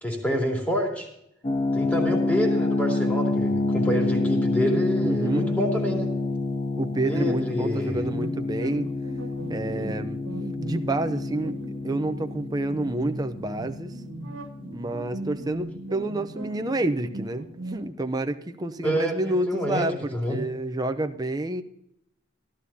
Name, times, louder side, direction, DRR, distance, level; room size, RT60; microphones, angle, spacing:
voice 1, 0.0-1.1 1.7-6.1 7.0-8.0 18.8-20.4, equal, 10° left, -1 dB, 2.6 m, -27 dB
sound 1, 1.4-16.2, left 2 dB, 30° left, 0.6 m, -28 dB
voice 2, 5.0-5.5 6.8-8.9 9.5-10.2 10.6-11.6 11.8-14.0 14.7-21.6, right 2 dB, 20° right, 8 dB, 0.6 m, -29 dB
sound 2, 8.1-17.8, right 2 dB, 80° right, 1.6 m, -39 dB
14.0 x 12.5 x 2.8 m, 0.75 s
head